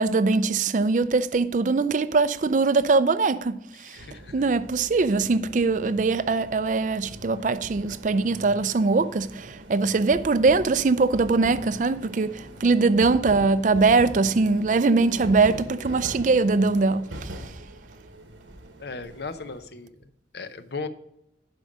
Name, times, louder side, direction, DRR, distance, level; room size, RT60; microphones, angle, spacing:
voice 1, 0.0-3.6 4.3-17.3, right 3 dB, 45° right, 0.4 m, -22 dB
voice 2, 3.7-4.5 15.1-15.3 18.8-20.9, left 4 dB, 60° left, 0.7 m, -37 dB
sound 1, 4.0-19.6, right 1 dB, 85° right, 1.3 m, -42 dB
11.0 x 5.2 x 5.1 m
head